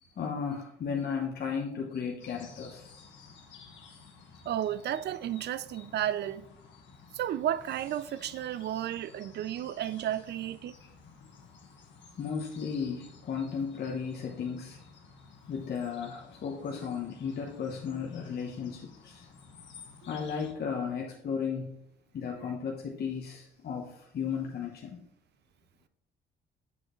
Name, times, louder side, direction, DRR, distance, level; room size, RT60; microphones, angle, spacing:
voice 1, 0.0-4.0 9.0-9.1 12.2-14.8 15.5-19.3 20.1-21.7 22.1-25.0, left 6 dB, 55° left, 0.9 m, -35 dB
sound 1, 2.2-20.5, left 5 dB, 70° left, 1.2 m, -54 dB
voice 2, 4.5-6.5 7.1-10.7 22.3-22.6, right 11 dB, 60° right, 0.4 m, -33 dB
7.2 x 6.5 x 3.1 m
cardioid pair, 90°, 20 cm